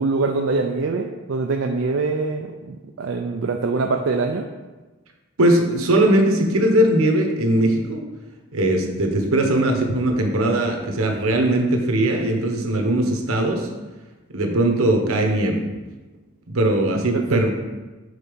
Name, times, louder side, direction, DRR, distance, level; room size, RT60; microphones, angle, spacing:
voice 1, 0.0-4.5 17.1-17.4, right 3 dB, 60° right, 3 dB, 0.4 m, -24 dB
voice 2, 5.4-8.0 8.5-13.7 14.3-15.6 16.5-17.5, right 1 dB, 80° right, 2 dB, 1.0 m, -20 dB
6.6 x 4.1 x 5.1 m, 1.2 s
head